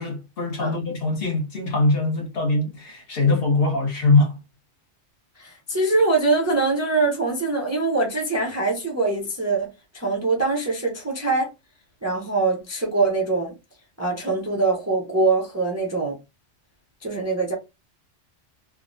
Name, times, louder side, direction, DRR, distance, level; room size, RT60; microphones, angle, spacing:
voice 1, 0.0-4.4, left 3 dB, 55° left, 1.0 m, -22 dB
voice 2, 5.4-11.5 12.0-13.5 14.0-16.2 17.0-17.5, right 3 dB, 20° right, 0.5 m, -23 dB
3.4 x 2.1 x 2.5 m
omnidirectional pair, 1.2 m